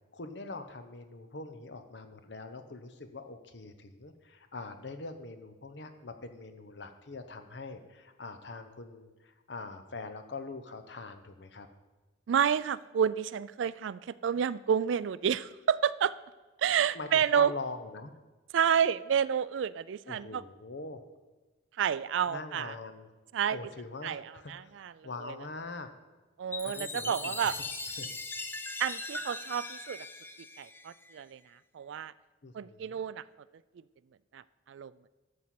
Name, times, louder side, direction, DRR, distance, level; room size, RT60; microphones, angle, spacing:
voice 1, 0.1-11.7 14.4-14.5 16.9-18.1 20.1-21.0 22.3-23.1 23.5-25.9 26.6-27.6 28.0-28.1 32.4-33.0, left 3 dB, 65° left, 8 dB, 0.9 m, -43 dB
voice 2, 12.3-16.1 16.6-17.5 18.5-20.4 21.8-22.7 23.3-23.6 24.0-25.3 26.4-27.5 28.8-30.1 30.6-31.4 31.7-32.1 32.5-33.2 34.3-34.9, right 8 dB, 80° right, 18 dB, 0.3 m, -30 dB
Chime, 26.5-31.2, left 3 dB, 10° left, 0.4 m, -40 dB
12.0 x 4.2 x 7.6 m, 1.2 s
head